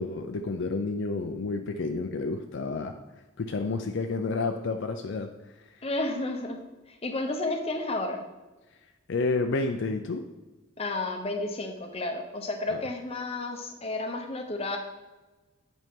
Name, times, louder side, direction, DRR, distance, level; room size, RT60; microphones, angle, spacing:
voice 1, 0.0-2.9 3.4-5.3 9.1-10.2 12.7-12.8, left 3 dB, 55° left, 5 dB, 0.4 m, -30 dB
voice 2, 5.8-6.6 7.0-8.2 10.8-14.8, left 2 dB, 30° left, 4 dB, 0.8 m, -31 dB
9.0 x 5.3 x 3.7 m, 1.1 s
head